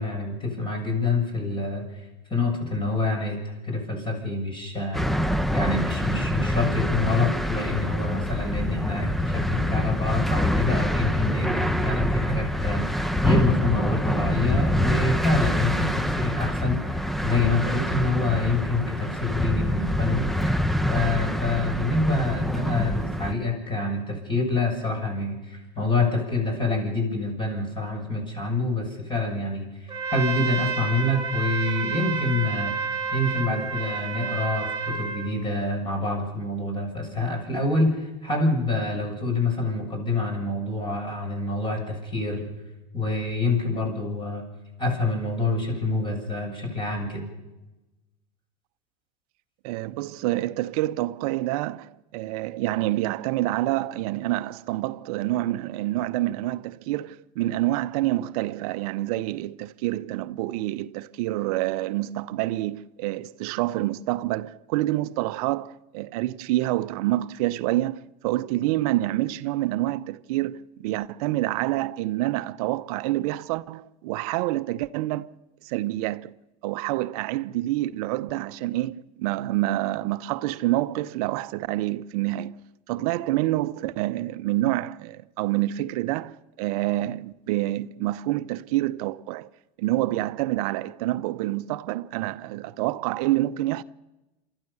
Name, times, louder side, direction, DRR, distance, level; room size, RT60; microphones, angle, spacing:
voice 1, 0.0-2.0 2.3-5.1 5.5-20.3 20.9-32.7 33.1-42.5 42.9-44.4 44.8-47.2, left 2 dB, 25° left, 7.5 m, -27 dB
sound 1, 4.9-23.3, equal, ahead, 0.8 m, -25 dB
Trumpet, 29.9-35.3, right 5 dB, 15° right, 4.2 m, -30 dB
voice 2, 49.6-75.3 75.6-76.3 76.6-82.6 82.9-89.5 89.8-93.8, right 16 dB, 60° right, 0.7 m, -27 dB
28.0 x 13.5 x 7.0 m
hypercardioid pair, 95°, 21 cm